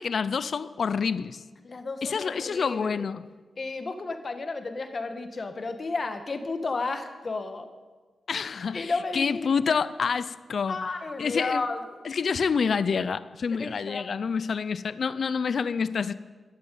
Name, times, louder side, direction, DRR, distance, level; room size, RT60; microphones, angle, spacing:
voice 1, 0.0-1.4 2.0-3.2 8.3-10.8 11.2-11.6 12.0-16.1, left 5 dB, 55° left, 0.5 m, -27 dB
voice 2, 1.6-3.0 3.6-7.7 8.7-9.7 10.7-11.9 13.5-14.0, left 3 dB, 35° left, 1.4 m, -32 dB
12.5 x 11.5 x 9.1 m
wide cardioid pair, 155°, 0 cm